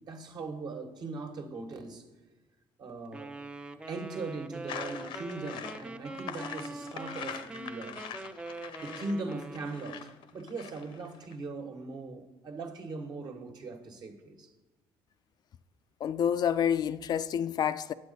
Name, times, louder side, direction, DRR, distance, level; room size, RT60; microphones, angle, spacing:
voice 1, 0.1-2.0 2.8-3.3 3.9-8.0 8.8-14.5, right 3 dB, 50° right, 1.4 m, -40 dB
Wind instrument woodwind instrument, 3.1-10.1, right 2 dB, 10° right, 0.4 m, -43 dB
sound 1, 4.7-11.3, left 8 dB, 70° left, 0.7 m, -43 dB
voice 2, 16.0-17.9, left 8 dB, 50° left, 0.4 m, -28 dB
9.4 x 7.7 x 4.1 m
cardioid pair, 105°, 9 cm